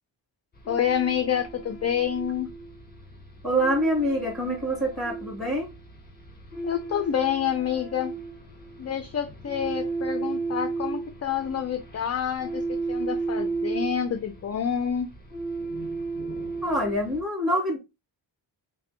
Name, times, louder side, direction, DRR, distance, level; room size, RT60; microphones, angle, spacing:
sound 1, 0.6-17.2, right 3 dB, 20° left, 1.2 m, -34 dB
voice 1, 0.7-2.5 6.6-8.1 8.8-15.1, left 8 dB, 35° left, 0.4 m, -28 dB
voice 2, 3.4-5.7 16.6-17.8, equal, ahead, 2.2 m, -25 dB
6.5 x 2.2 x 2.8 m
wide cardioid pair, 130°, 47 cm